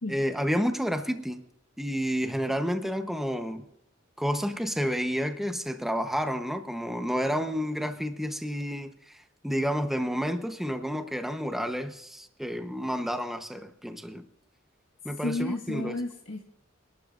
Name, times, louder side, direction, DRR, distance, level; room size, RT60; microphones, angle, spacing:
voice 1, 0.1-1.4 1.8-3.6 4.2-14.2 15.0-16.0, equal, ahead, 7 dB, 0.9 m, -30 dB
voice 2, 15.2-16.4, left 2 dB, 75° left, -1 dB, 1.6 m, -32 dB
28.0 x 12.0 x 2.5 m, 0.80 s
head